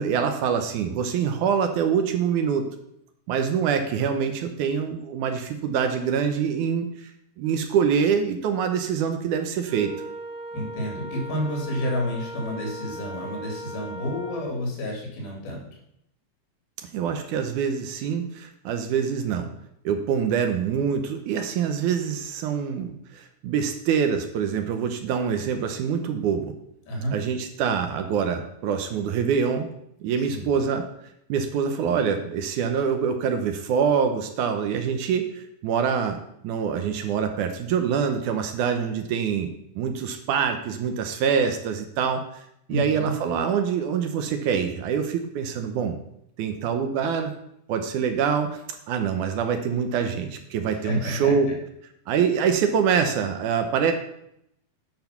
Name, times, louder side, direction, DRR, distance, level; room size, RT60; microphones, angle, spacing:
voice 1, 0.0-2.7 3.3-7.1 7.4-10.0 16.9-19.5 19.9-26.5 27.1-29.7 30.0-30.8 31.3-36.2 36.4-42.3 42.7-46.0 46.4-47.3 47.7-48.6 48.9-51.5 52.1-53.9, right 7 dB, 75° right, 6 dB, 1.9 m, -25 dB
Wind instrument woodwind instrument, 9.6-14.5, right 1 dB, 15° right, 1.0 m, -38 dB
voice 2, 10.5-15.6 26.9-27.1 30.3-30.6 42.7-43.2 50.7-51.4, equal, 80° left, -1 dB, 4.6 m, -30 dB
8.9 x 5.8 x 5.8 m, 0.77 s
omnidirectional pair, 4.3 m